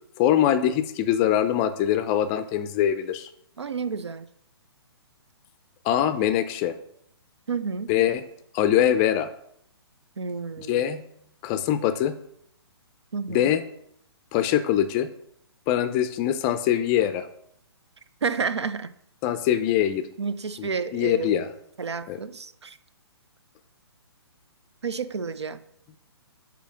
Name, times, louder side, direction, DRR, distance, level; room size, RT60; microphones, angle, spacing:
voice 1, 0.2-3.3 5.8-6.8 7.9-8.2 8.5-9.3 10.6-11.0 11.4-12.2 13.3-13.6 14.3-15.1 15.7-17.3 19.2-20.1 20.6-21.5 22.1-22.2, left 11 dB, 25° left, 11 dB, 0.4 m, -23 dB
voice 2, 3.6-4.3 7.5-7.9 10.2-10.8 13.1-13.5 18.2-18.9 20.2-21.4 21.8-22.8 24.8-25.6, right 5 dB, 85° right, 14 dB, 0.6 m, -30 dB
8.2 x 2.9 x 6.1 m, 0.72 s
hypercardioid pair, 135°, 14 cm